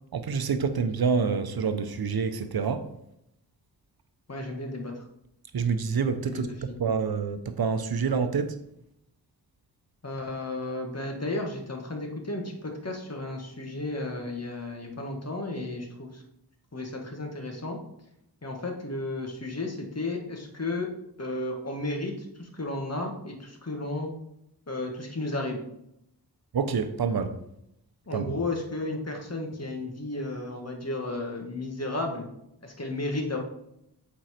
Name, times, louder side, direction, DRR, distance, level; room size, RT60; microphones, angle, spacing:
voice 1, 0.1-2.8 5.5-6.5 6.8-8.5 26.5-27.3 28.1-28.4, right 5 dB, 60° right, 0.8 m, -27 dB
voice 2, 4.3-5.0 6.3-6.5 10.0-16.2 16.7-17.8 18.4-20.9 21.2-22.1 22.4-24.1 24.7-25.6 28.1-32.3 32.6-33.4, left 2 dB, 35° left, 1.7 m, -33 dB
7.8 x 4.5 x 4.4 m
cardioid pair, 45°, 41 cm